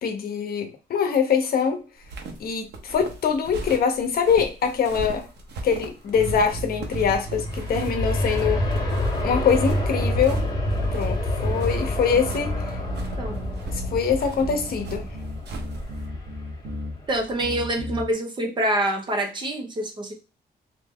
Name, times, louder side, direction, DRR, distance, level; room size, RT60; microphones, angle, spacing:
voice 1, 0.0-1.8 2.4-5.3 5.6-8.6 9.2-10.4 10.9-12.6 13.7-15.1, left 6 dB, 60° left, 5 dB, 0.7 m, -23 dB
sound 1, 2.0-16.1, right 3 dB, 85° right, 0.8 m, -38 dB
sound 2, 6.1-8.0 8.4-11.0 11.4-14.0 14.4-16.9 17.4-18.1, right 2 dB, 65° right, 1.0 m, -34 dB
Aircraft, 6.7-17.5 18.0-18.1, left 1 dB, 20° left, 0.8 m, -28 dB
voice 2, 17.1-20.1, right 1 dB, 25° right, 3 dB, 0.7 m, -26 dB
3.2 x 2.7 x 3.5 m, 0.33 s
wide cardioid pair, 180°, 17 cm